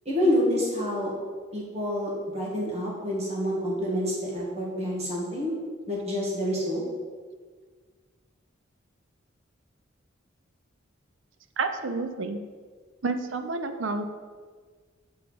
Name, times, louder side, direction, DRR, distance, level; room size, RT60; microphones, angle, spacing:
voice 1, 0.1-1.1 1.5-5.5 5.9-6.8, equal, 30° right, -4 dB, 1.9 m, -27 dB
voice 2, 11.6-12.4 13.0-14.1, right 3 dB, 65° right, 8 dB, 0.6 m, -29 dB
7.2 x 4.6 x 5.1 m, 1.6 s
head